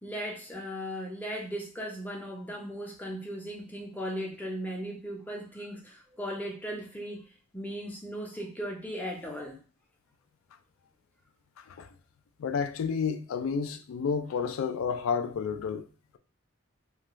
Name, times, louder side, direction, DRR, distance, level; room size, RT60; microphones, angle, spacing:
voice 1, 0.0-7.2 7.5-9.6, equal, 10° left, 0.5 m, -37 dB
voice 2, 11.6-11.9 12.4-15.8, left 6 dB, 90° left, 0.3 m, -30 dB
2.3 x 2.3 x 2.9 m
head